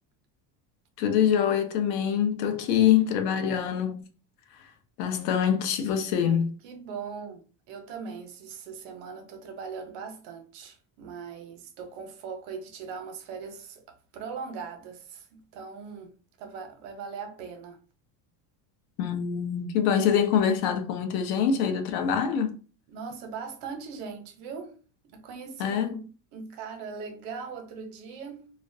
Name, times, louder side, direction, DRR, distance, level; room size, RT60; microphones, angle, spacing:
voice 1, 1.0-4.0 4.6-4.7 5.0-6.6 19.0-22.5 25.6-25.9, left 8 dB, 85° left, 0.7 m, -25 dB
voice 2, 2.3-2.7 6.6-17.8 22.9-24.8 25.1-26.1 26.3-28.5, right 5 dB, 70° right, 0.8 m, -40 dB
2.3 x 2.1 x 2.6 m
cardioid pair, 155°, 47 cm